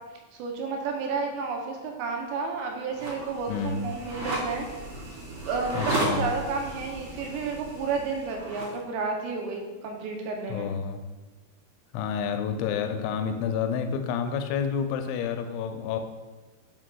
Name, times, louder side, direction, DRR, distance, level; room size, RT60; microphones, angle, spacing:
voice 1, 0.3-4.7 5.5-10.7, right 4 dB, 80° right, 1 dB, 2.7 m, -31 dB
sound 1, 2.9-8.8, right 1 dB, 60° right, 1.4 m, -34 dB
voice 2, 3.5-3.8 5.7-6.3 10.5-11.0 11.9-16.0, left 7 dB, 90° left, 7 dB, 2.9 m, -29 dB
6.8 x 6.1 x 2.3 m, 1.2 s
omnidirectional pair, 5.2 m